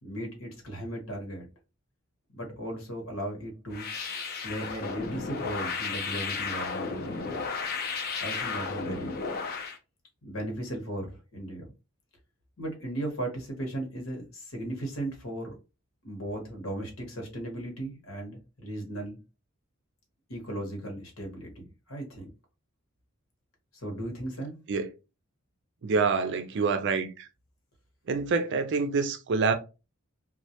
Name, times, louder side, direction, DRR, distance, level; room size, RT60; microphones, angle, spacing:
voice 1, 0.0-1.5 2.3-3.9 4.4-7.5 8.2-9.1 10.2-11.7 12.6-15.5 16.0-19.2 20.3-22.3 23.7-24.6, right 1 dB, 75° left, 1.0 m, -36 dB
sound 1, 3.7-9.8, left 5 dB, 50° left, 0.5 m, -34 dB
voice 2, 25.8-27.3 28.1-29.5, right 4 dB, 60° right, 0.4 m, -26 dB
2.2 x 2.1 x 2.7 m
head